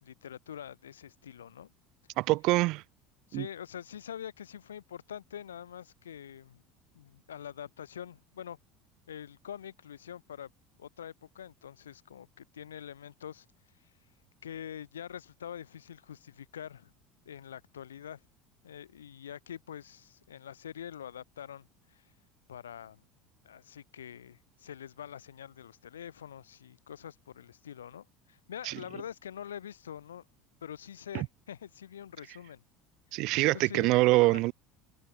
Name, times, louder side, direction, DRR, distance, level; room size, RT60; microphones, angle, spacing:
voice 1, 0.0-1.7 3.3-6.6 6.9-8.6 9.1-10.5 10.8-13.4 14.4-16.9 17.2-18.2 18.6-22.0 22.5-23.0 23.4-30.2 30.6-32.6 33.5-34.4, left 9 dB, 80° left, 1.5 m, -45 dB
voice 2, 2.2-2.8 3.3-3.5 28.6-28.8 31.1-31.3 33.1-34.5, right 21 dB, 55° right, 0.4 m, -25 dB
figure-of-eight pair, 70°, 0 cm